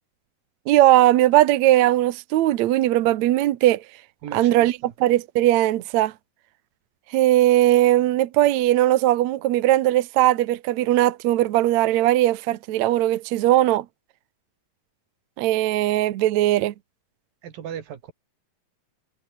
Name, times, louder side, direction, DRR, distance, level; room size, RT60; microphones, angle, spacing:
voice 1, 0.7-3.8 4.3-6.1 7.1-13.9 15.4-16.7, right 14 dB, 65° right, 2.0 m, -19 dB
voice 2, 4.2-4.9 17.4-18.1, right 9 dB, 85° right, 4.1 m, -37 dB
omnidirectional pair, 4.0 m